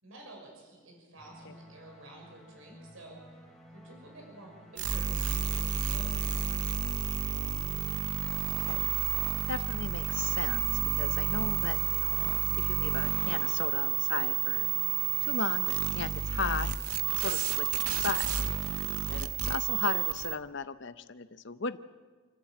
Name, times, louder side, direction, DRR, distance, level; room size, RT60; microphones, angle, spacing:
voice 1, 0.0-3.2 3.7-6.2, right 2 dB, 70° right, 0 dB, 6.0 m, -51 dB
sound 1, 1.2-20.1, equal, ahead, 3.6 m, -54 dB
sound 2, 4.8-20.4, right 9 dB, 90° right, 0.8 m, -30 dB
voice 2, 8.5-9.0 9.5-10.6 10.9-12.2 12.6-14.7 15.2-18.6 19.1-21.8, left 5 dB, 55° left, 12 dB, 0.8 m, -36 dB
28.0 x 11.5 x 8.8 m, 1.5 s
head